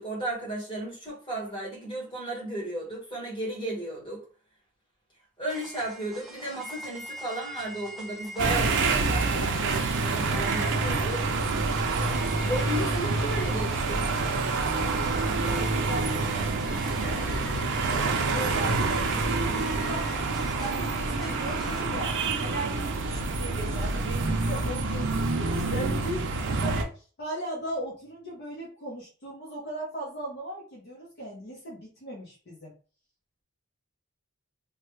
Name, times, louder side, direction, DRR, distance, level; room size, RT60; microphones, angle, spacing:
voice 1, 0.0-4.2 5.4-11.2 12.5-14.1, right 1 dB, 25° left, 1.4 m, -34 dB
sound 1, 5.5-21.8, right 1 dB, ahead, 0.7 m, -44 dB
sound 2, 8.4-26.8, right 3 dB, 60° right, 0.5 m, -27 dB
voice 2, 14.6-20.1 20.5-32.7, right 1 dB, 50° left, 0.9 m, -38 dB
3.1 x 2.1 x 3.1 m
head